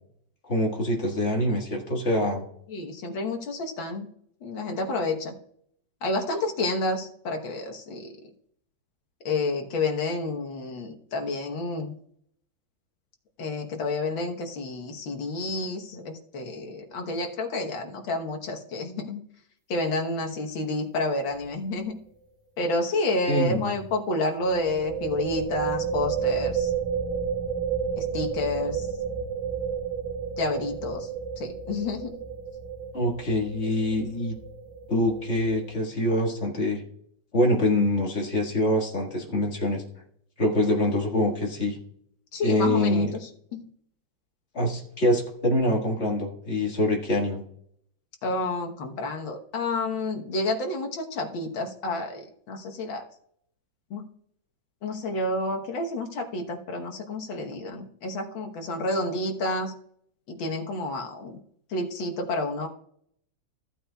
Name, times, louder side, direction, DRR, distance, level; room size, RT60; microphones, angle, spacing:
voice 1, 0.5-2.5 23.3-23.7 32.9-34.4 34.9-36.8 37.3-39.8 40.4-41.8 42.4-43.1 44.5-47.4, left 1 dB, 35° left, -1 dB, 1.9 m, -25 dB
voice 2, 2.7-4.1 4.4-5.4 6.0-8.1 9.3-11.9 13.4-19.2 19.7-21.9 22.6-26.7 28.0-28.9 30.4-31.1 31.4-32.2 42.3-43.1 43.5-43.6 48.2-53.1 53.9-54.0 54.8-59.7 60.3-61.4 61.7-62.7, left 2 dB, 70° left, 3 dB, 1.9 m, -29 dB
sound 1, 21.3-21.6 21.8-21.9 24.4-35.8, right 7 dB, 25° right, 1.4 m, -31 dB
14.5 x 8.4 x 2.3 m, 0.68 s
omnidirectional pair, 2.2 m